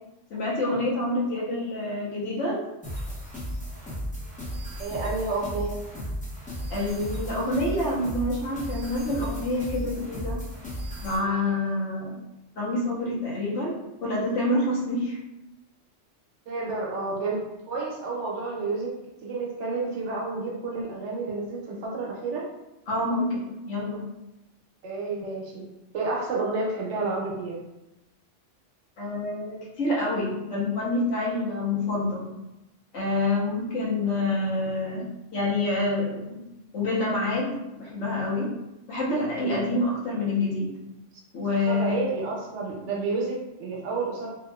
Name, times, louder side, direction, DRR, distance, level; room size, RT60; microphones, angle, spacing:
voice 1, 0.3-2.6 6.7-10.4 11.0-12.2 12.6-15.2 22.9-24.0 29.0-32.3 32.9-35.0 35.3-36.4 36.7-38.5 38.9-40.7 41.3-42.0, left 2 dB, 80° left, -5 dB, 1.2 m, -27 dB
sound 1, 2.8-11.2, equal, 10° left, 0.6 m, -35 dB
voice 2, 4.8-5.8 16.5-18.9 19.2-22.5 24.8-25.7 25.9-27.6 41.7-44.3, right 3 dB, 70° right, -3 dB, 1.0 m, -30 dB
2.8 x 2.6 x 2.2 m, 0.94 s
omnidirectional pair, 1.3 m